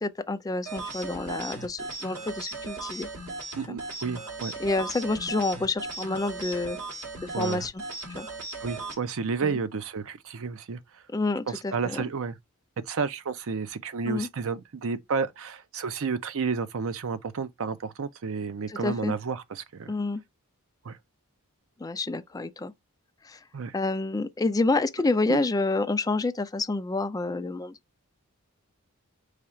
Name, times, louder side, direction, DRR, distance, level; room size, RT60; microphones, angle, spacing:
voice 1, 0.0-3.1 3.7-3.8 4.6-6.8 7.2-7.8 8.2-8.3 9.4-9.6 11.1-12.0 14.1-14.3 18.7-19.1 19.9-20.2 21.8-22.7 23.2-23.4 23.7-27.7, left 3 dB, 15° left, 0.3 m, -28 dB
sound 1, 0.6-9.0, right 3 dB, 85° right, 1.9 m, -37 dB
voice 2, 3.6-4.5 7.3-7.6 8.6-10.8 11.5-12.4 12.9-19.9 20.8-21.0 23.5-23.7 25.3-25.4, right 5 dB, 65° right, 0.5 m, -31 dB
4.9 x 2.4 x 4.2 m
head